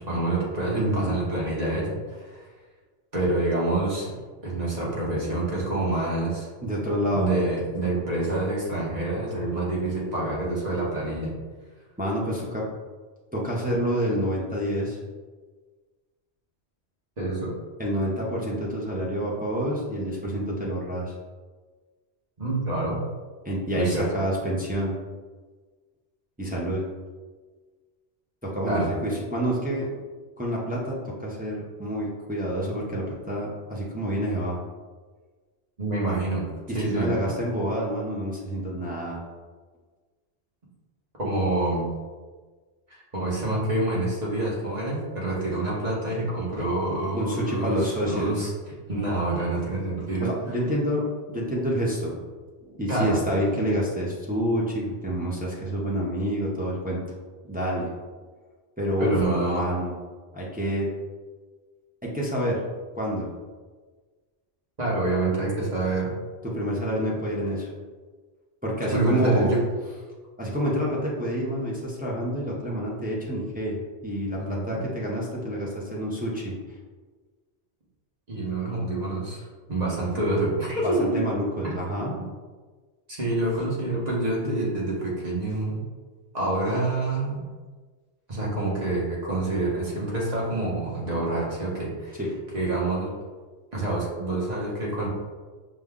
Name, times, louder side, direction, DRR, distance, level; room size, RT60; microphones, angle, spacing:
voice 1, 0.0-2.5 3.1-4.1 4.4-6.5 7.1-11.3 17.2-17.5 22.4-23.0 23.7-24.1 28.7-28.9 35.8-36.5 36.7-37.1 41.2-41.9 42.9-48.5 48.9-50.3 52.9-53.2 59.0-59.6 64.8-66.1 68.8-69.6 74.4-74.9 78.3-81.2 81.6-82.1 83.1-85.8 86.3-87.5 88.3-92.2 92.5-93.1 93.7-95.1, right 2 dB, 40° right, -5 dB, 1.2 m, -27 dB
voice 2, 0.7-1.1 6.6-7.3 12.0-12.7 13.3-15.0 17.8-21.1 23.4-25.0 26.4-26.8 28.4-29.9 30.4-34.6 36.7-39.2 47.1-48.3 50.2-52.1 52.6-57.0 57.5-57.9 58.8-59.9 60.3-60.9 62.0-62.6 62.9-63.3 66.4-67.7 68.6-69.5 70.4-76.6 80.7-82.2 92.2-92.3, equal, 10° right, -4 dB, 0.5 m, -28 dB
5.4 x 2.2 x 3.5 m, 1.4 s
omnidirectional pair, 1.2 m